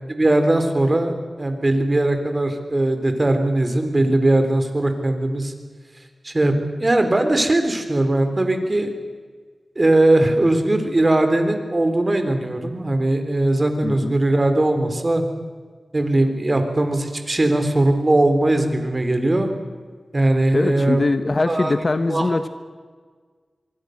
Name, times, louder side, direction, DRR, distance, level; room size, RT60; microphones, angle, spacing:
voice 1, 0.1-5.5 6.2-6.5 6.8-8.9 9.8-15.2 15.9-19.5 20.1-21.0 21.5-21.7 22.1-22.3, right 1 dB, 30° right, 7 dB, 3.7 m, -19 dB
voice 2, 13.8-14.1 20.5-22.5, left 2 dB, 40° left, 11 dB, 1.3 m, -22 dB
25.5 x 23.5 x 6.6 m, 1.6 s
wide cardioid pair, 75°, 0 cm